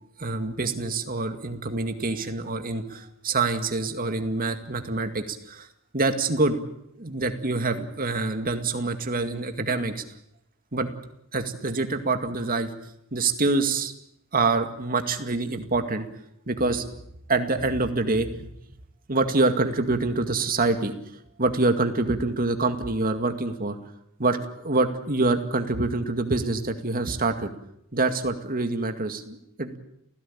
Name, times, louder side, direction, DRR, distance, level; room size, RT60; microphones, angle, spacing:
voice 1, 0.2-5.7 5.9-6.6 6.9-10.0 10.7-10.9 11.3-13.9 14.3-16.1 16.5-16.9 17.3-18.5 19.1-23.8 24.2-24.4 24.6-27.5 27.9-29.8, right 3 dB, 45° right, 7 dB, 2.2 m, -26 dB
29.5 x 16.0 x 8.7 m, 0.78 s
head